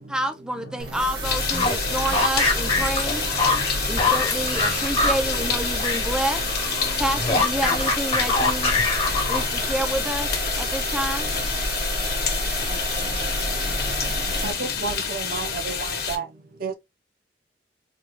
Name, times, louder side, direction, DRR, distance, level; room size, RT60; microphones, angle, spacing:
voice 1, 0.1-3.3 3.9-6.4 7.0-8.7 9.3-10.3 10.6-11.3, right 1 dB, 5° right, 0.4 m, -28 dB
sound 1, 0.8-14.5, right 1 dB, 75° right, 2.0 m, -30 dB
sound 2, 1.2-16.2, left 6 dB, 60° left, 0.9 m, -28 dB
sound 3, 1.4-6.1 6.4-9.7, left 3 dB, 30° left, 1.0 m, -24 dB
voice 2, 3.9-4.5 4.7-4.8 7.3-7.4 12.1-14.7, left 2 dB, 85° left, 0.8 m, -45 dB
voice 3, 14.4-16.2 16.6-16.7, right 4 dB, 55° right, 0.6 m, -31 dB
3.6 x 2.3 x 3.0 m
head